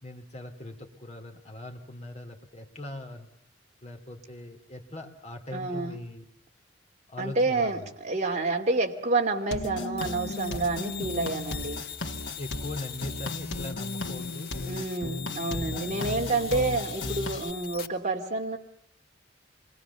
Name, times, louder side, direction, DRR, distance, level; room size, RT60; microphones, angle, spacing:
voice 1, 0.0-3.3 3.8-6.3 7.1-7.9 12.4-14.6 15.4-16.9, left 1 dB, 35° left, 5 dB, 2.9 m, -40 dB
voice 2, 5.5-6.0 7.2-11.8 14.7-18.6, right 3 dB, 40° right, 1 dB, 2.5 m, -29 dB
sound 1, 9.5-17.5, left 2 dB, 80° left, 2.0 m, -35 dB
sound 2, 10.0-17.9, left 9 dB, 55° left, 2.2 m, -41 dB
27.5 x 22.5 x 6.9 m, 0.67 s
head